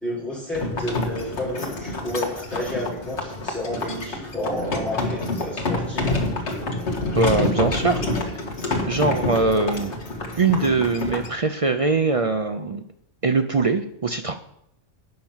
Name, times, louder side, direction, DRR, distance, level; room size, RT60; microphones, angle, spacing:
voice 1, 0.0-6.1, left 1 dB, ahead, -11 dB, 3.8 m, -31 dB
sound 1, 0.5-11.3, left 2 dB, 65° left, 1.9 m, -27 dB
voice 2, 7.1-8.0 8.3-8.4 8.8-10.0 10.4-12.8 13.2-14.4, right 3 dB, 50° right, 7 dB, 0.4 m, -22 dB
9.3 x 5.9 x 7.2 m, 0.75 s
omnidirectional pair, 1.3 m